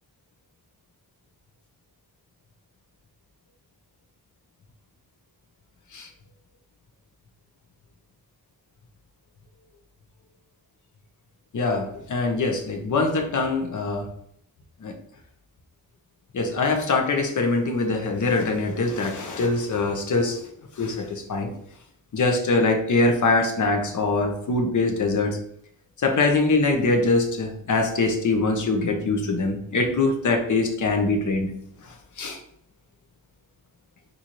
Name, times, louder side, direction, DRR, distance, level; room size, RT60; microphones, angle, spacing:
voice 1, 11.5-14.1 14.8-14.9 16.3-20.4 20.8-21.5 22.1-25.4 26.0-31.5 32.2-32.4, left 3 dB, 50° left, 3 dB, 0.8 m, -23 dB
4.1 x 2.7 x 3.0 m, 0.70 s
wide cardioid pair, 95°, 37 cm